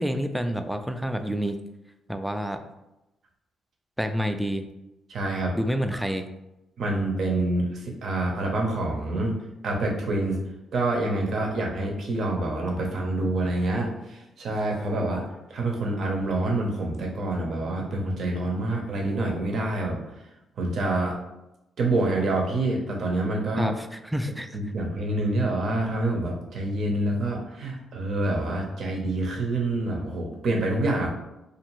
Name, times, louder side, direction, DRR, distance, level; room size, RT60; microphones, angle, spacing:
voice 1, 0.0-1.6 2.1-2.6 4.0-4.7 5.6-6.3 23.6-24.5, equal, 5° right, 7 dB, 0.3 m, -28 dB
voice 2, 5.1-5.5 6.8-9.3 9.6-10.4 10.7-15.2 15.5-20.0 20.6-21.1 21.8-23.7 24.5-31.1, right 2 dB, 65° right, 0 dB, 0.7 m, -27 dB
2.6 x 2.5 x 3.0 m, 0.91 s
supercardioid pair, 65°, 0 cm